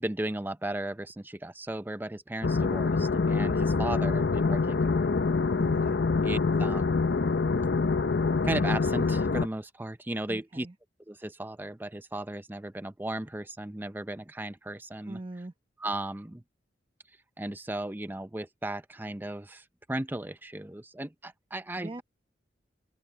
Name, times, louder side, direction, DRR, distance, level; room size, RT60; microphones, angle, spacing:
voice 1, 0.0-5.1 6.2-7.0 8.4-10.7 11.1-15.2 15.8-16.4 17.4-22.0, right 1 dB, 10° right, 0.5 m, -35 dB
sound 1, 2.4-9.5, left 4 dB, 65° left, 0.7 m, -25 dB
voice 2, 5.6-6.0 10.3-10.7 15.1-15.5 21.8-22.0, right 2 dB, 30° right, 1.0 m, -41 dB
open air
head